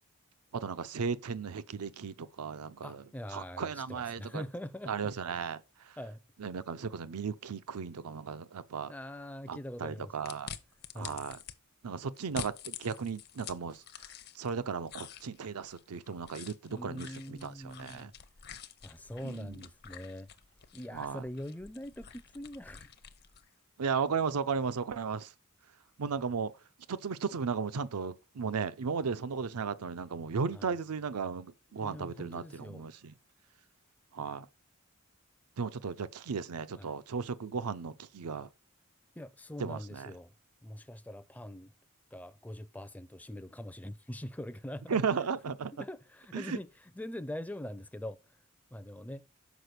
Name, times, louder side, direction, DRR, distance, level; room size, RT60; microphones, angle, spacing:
voice 1, 0.5-3.0 3.3-4.4 4.9-6.0 6.4-8.9 9.5-10.5 11.0-11.4 11.8-13.8 14.4-18.1 19.2-19.6 20.9-21.2 23.8-25.3 26.0-26.5 26.9-33.1 34.1-34.5 35.6-38.5 39.6-40.1 44.9-45.7 46.3-46.6, right 5 dB, 85° right, 0.6 m, -35 dB
voice 2, 2.8-5.4 6.0-6.2 8.9-10.1 10.9-11.2 16.7-18.1 18.8-20.3 20.7-22.9 30.5-30.7 31.7-32.9 36.8-36.9 39.2-40.3 40.6-41.7 42.1-45.0 45.7-46.7 47.0-48.2 48.7-49.3, left 1 dB, 5° left, 0.4 m, -43 dB
sound 1, 10.3-11.6 12.2-14.5 14.9-23.5, left 8 dB, 45° left, 0.6 m, -48 dB
6.1 x 4.9 x 6.6 m
head